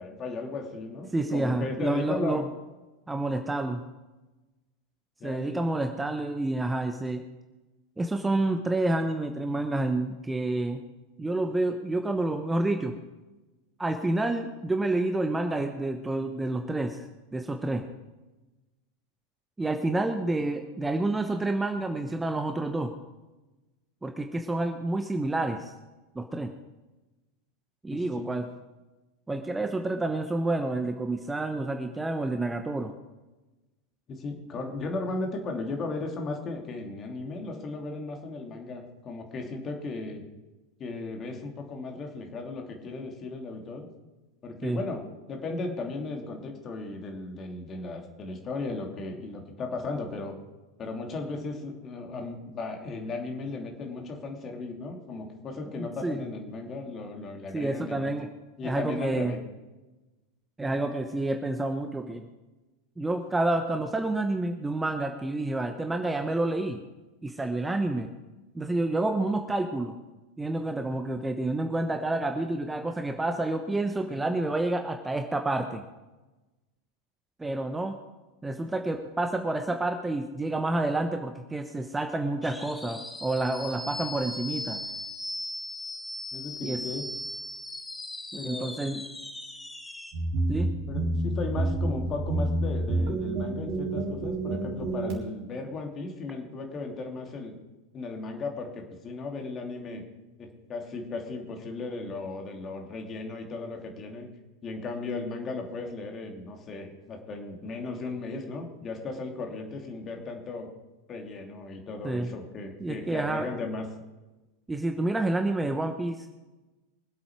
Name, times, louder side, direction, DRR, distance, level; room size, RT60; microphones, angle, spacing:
voice 1, 0.0-2.4 5.2-5.7 27.9-28.3 34.1-40.2 40.8-43.9 44.4-45.0 45.3-50.4 50.8-58.1 58.6-59.4 86.3-87.0 88.4-88.7 90.9-97.5 97.9-100.0 100.4-104.3 104.6-110.7 111.1-113.8, left 3 dB, 30° left, 2 dB, 2.9 m, -36 dB
voice 2, 1.1-2.5 3.1-3.8 5.2-7.2 8.0-10.8 11.2-13.0 13.8-17.1 17.3-17.8 19.6-22.9 24.0-25.7 26.1-26.5 27.8-28.5 29.3-32.9 44.6-44.8 56.0-56.2 57.5-58.3 58.6-59.3 60.6-62.2 63.0-66.8 67.2-68.1 68.5-70.0 70.4-75.8 77.4-78.0 78.4-84.8 86.6-86.8 88.4-89.0 90.5-90.8 112.0-112.3 112.8-113.5 114.7-116.3, right 2 dB, 10° right, 6 dB, 1.0 m, -29 dB
sound 1, 82.4-90.1, left 1 dB, 10° left, 1.5 m, -38 dB
sound 2, 90.1-95.2, right 2 dB, 50° right, 4.1 m, -28 dB
24.0 x 8.3 x 4.7 m, 1.1 s
figure-of-eight pair, 85°, 0 cm